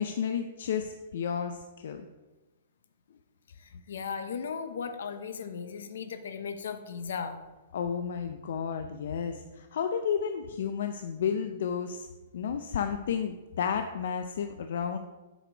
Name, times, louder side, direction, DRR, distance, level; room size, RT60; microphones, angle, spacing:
voice 1, 0.0-2.0 7.7-12.1 12.3-15.0, left 7 dB, 60° left, 7 dB, 0.4 m, -32 dB
voice 2, 3.6-7.4, left 6 dB, 80° left, 9 dB, 0.8 m, -37 dB
7.6 x 5.1 x 5.0 m, 1.2 s
hypercardioid pair, 170°, 0 cm